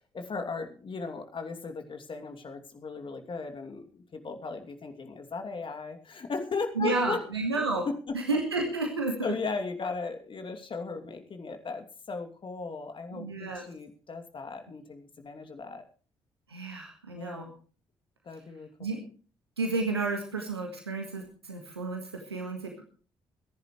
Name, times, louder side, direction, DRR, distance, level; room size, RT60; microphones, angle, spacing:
voice 1, 0.0-7.2 7.9-8.2 9.2-15.9 17.1-17.5 18.2-18.9, left 4 dB, 40° left, 6 dB, 2.8 m, -37 dB
voice 2, 6.8-7.9 8.1-9.3 13.1-13.6 16.5-17.5 18.8-19.1 19.6-22.8, right 3 dB, 90° right, 2 dB, 1.7 m, -31 dB
26.0 x 10.5 x 3.2 m, 0.40 s
figure-of-eight pair, 40°, 13 cm